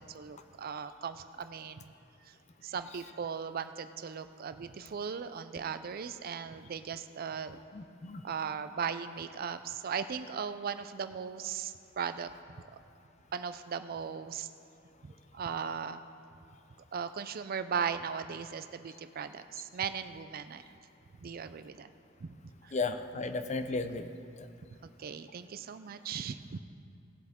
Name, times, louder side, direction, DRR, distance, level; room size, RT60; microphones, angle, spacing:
voice 1, 0.0-1.9 2.2-2.3 2.6-7.6 8.2-12.3 13.3-14.5 15.0-16.0 16.9-20.6 21.2-21.9 22.2-22.3 22.6-22.7 24.8-26.6, right 6 dB, 50° right, 11 dB, 0.4 m, -38 dB
voice 2, 7.7-8.2 22.7-24.1 24.4-24.5, left 3 dB, 35° left, 9 dB, 0.5 m, -34 dB
18.0 x 7.8 x 3.6 m, 2.5 s
head